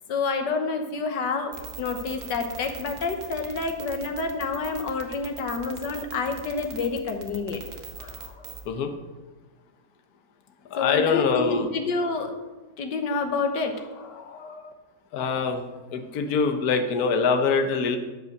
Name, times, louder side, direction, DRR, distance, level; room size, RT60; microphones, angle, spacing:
voice 1, 0.1-7.6 8.0-8.5 10.8-12.3 12.8-14.7, left 4 dB, 85° left, 5 dB, 1.7 m, -29 dB
sound 1, 1.5-8.7, right 6 dB, 65° right, 1.7 m, -40 dB
voice 2, 10.7-11.7 15.1-15.6 15.9-18.0, left 5 dB, 65° left, 5 dB, 1.4 m, -24 dB
12.0 x 5.4 x 6.6 m, 1.2 s
omnidirectional pair, 1.8 m